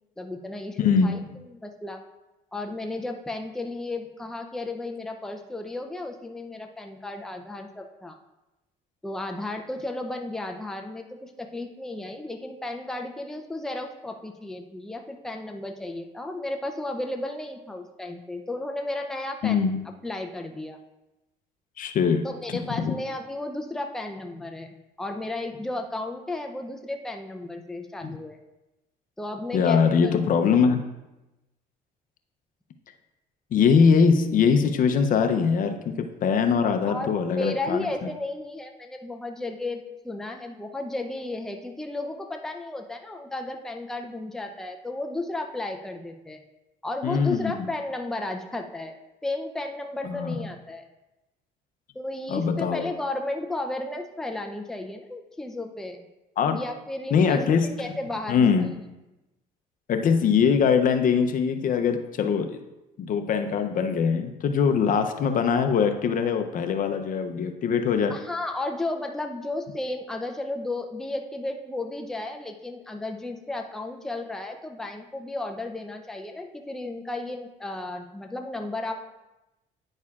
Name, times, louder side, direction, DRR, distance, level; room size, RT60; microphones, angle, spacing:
voice 1, 0.2-2.0 2.5-8.2 9.0-19.7 20.0-20.8 22.2-28.4 29.2-30.1 36.8-46.4 46.8-48.9 49.2-50.9 51.9-56.0 56.6-57.5 57.8-58.7 68.1-79.0, left 2 dB, 5° left, 4 dB, 0.6 m, -34 dB
voice 2, 0.8-1.1 19.4-19.8 21.8-22.9 28.0-28.2 29.5-30.8 33.5-37.8 47.0-47.7 50.1-50.3 52.3-52.9 56.4-56.6 57.1-57.8 58.3-58.7 59.9-62.6 63.0-68.1, left 6 dB, 55° left, 7 dB, 0.7 m, -22 dB
9.6 x 6.5 x 2.4 m, 0.98 s
cardioid pair, 110°, 17 cm